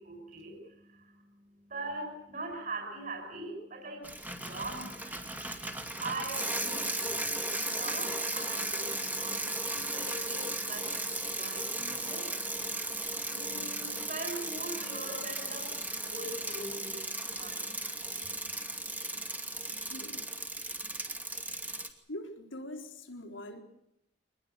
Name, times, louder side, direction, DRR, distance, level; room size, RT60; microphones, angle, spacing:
voice 1, 0.0-5.3 5.7-11.0 11.3-12.3 13.3-15.7 16.0-17.0 17.4-17.9, right 2 dB, 45° right, 3 dB, 6.0 m, -42 dB
Bicycle, 4.0-21.9, right 2 dB, 10° right, 2.3 m, -36 dB
voice 2, 19.9-20.3 22.1-23.6, left 1 dB, 90° left, 3 dB, 4.0 m, -43 dB
25.0 x 20.0 x 8.2 m, 0.78 s
head